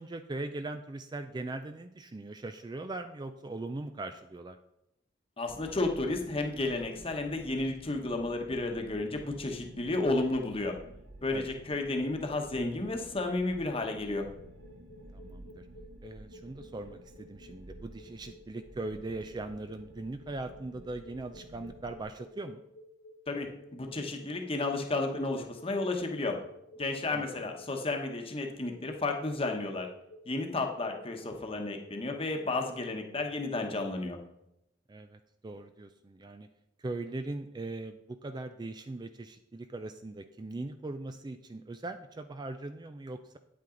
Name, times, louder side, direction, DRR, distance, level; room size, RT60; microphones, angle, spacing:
voice 1, 0.0-4.6 11.3-11.5 15.1-15.7 16.0-22.6 27.1-27.5 34.9-36.5 36.8-43.4, right 2 dB, 20° right, 9 dB, 0.4 m, -40 dB
voice 2, 5.4-10.8 11.2-14.3 23.3-26.4 26.8-29.9 30.3-34.2, left 2 dB, 30° left, 3 dB, 1.1 m, -32 dB
sound 1, 5.5-22.0, right 1 dB, 90° right, 1.3 m, -52 dB
sound 2, 14.3-34.1, equal, 60° left, 1.3 m, -53 dB
9.2 x 8.6 x 3.8 m, 0.84 s
head